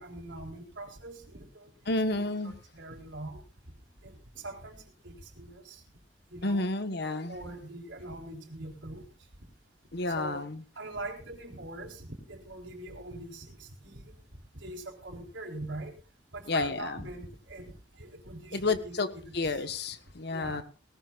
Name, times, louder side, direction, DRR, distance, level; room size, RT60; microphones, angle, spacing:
voice 1, 0.0-1.7 2.1-3.4 4.0-5.8 6.3-6.7 7.3-9.1 10.1-10.4 10.8-14.2 14.5-16.0 16.3-19.7 20.3-20.6, right 2 dB, 75° right, 3 dB, 4.2 m, -43 dB
voice 2, 1.9-2.5 6.4-7.4 9.9-10.6 16.5-17.0 18.5-19.1 19.3-20.6, left 3 dB, 60° left, 10 dB, 1.3 m, -30 dB
19.5 x 19.0 x 2.5 m, 0.33 s
head